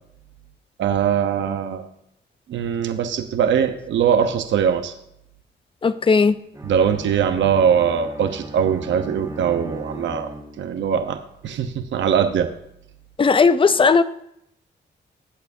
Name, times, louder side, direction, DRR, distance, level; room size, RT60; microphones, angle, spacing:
voice 1, 0.8-1.9 2.5-4.9 6.6-10.3 10.6-12.5, right 8 dB, 85° right, 7 dB, 0.9 m, -21 dB
voice 2, 5.8-6.4 13.2-14.0, left 4 dB, 30° left, 13 dB, 0.6 m, -16 dB
Bowed string instrument, 6.5-11.0, right 1 dB, 15° right, 1.9 m, -37 dB
19.5 x 8.3 x 2.7 m, 0.76 s
cardioid pair, 90°, 19 cm